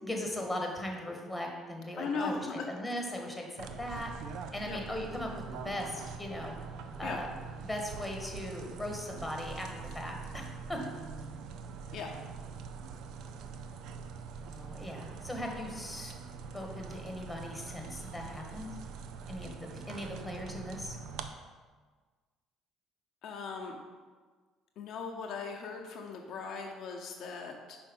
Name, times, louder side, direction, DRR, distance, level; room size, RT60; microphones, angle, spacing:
voice 1, 0.0-4.1 4.5-6.6 7.0-7.3 7.6-10.8 14.4-16.1 16.5-18.7 19.3-21.0, left 1 dB, 10° left, 1 dB, 1.5 m, -39 dB
voice 2, 2.0-2.7 4.7-4.8 7.0-7.2 11.9-12.1 23.2-23.8 24.8-27.8, left 4 dB, 65° left, 2 dB, 0.7 m, -38 dB
sound 1, 3.6-21.3, right 5 dB, 70° right, 0.4 m, -44 dB
5.5 x 4.3 x 5.3 m, 1.5 s
supercardioid pair, 70°, 0 cm